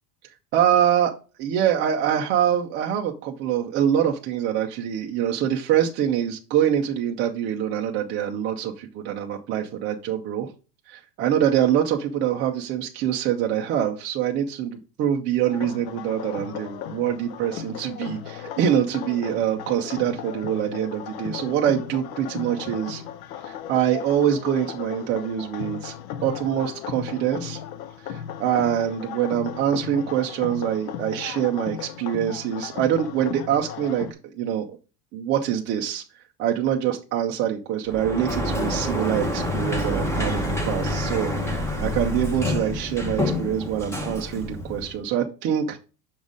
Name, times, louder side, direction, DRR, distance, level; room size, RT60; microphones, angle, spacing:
voice 1, 0.5-1.1 1.4-10.5 10.9-23.0 23.4-25.9 26.2-27.6 28.1-34.1 34.4-34.7 35.1-36.0 36.4-45.8, right 10 dB, 25° right, 1 dB, 0.3 m, -24 dB
sound 1, 15.5-34.1, left 9 dB, 85° left, 0.8 m, -36 dB
Sliding door, 37.9-45.0, left 1 dB, 5° left, 0.7 m, -27 dB
6.1 x 4.0 x 4.9 m, 0.33 s
supercardioid pair, 160°, 48 cm